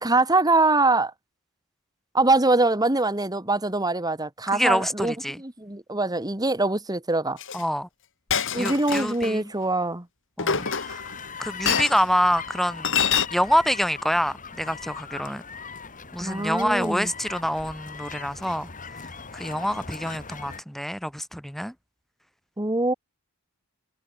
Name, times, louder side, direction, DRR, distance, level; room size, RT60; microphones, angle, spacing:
voice 1, 0.0-1.1 2.1-7.4 8.5-10.1 16.2-17.1 22.6-22.9, right 2 dB, 20° right, 2.3 m, -23 dB
voice 2, 4.5-5.4 7.5-7.9 8.6-9.5 10.4-11.0 11.4-12.9 13.3-15.4 16.1-18.7 19.3-21.7, equal, ahead, 3.6 m, -26 dB
Chink clink, 7.4-7.6 8.3-9.3 10.4-11.2 11.7-12.0 12.8-13.3, left 7 dB, 60° left, 4.4 m, -25 dB
sound 1, 10.5-20.6, left 5 dB, 35° left, 4.9 m, -39 dB
head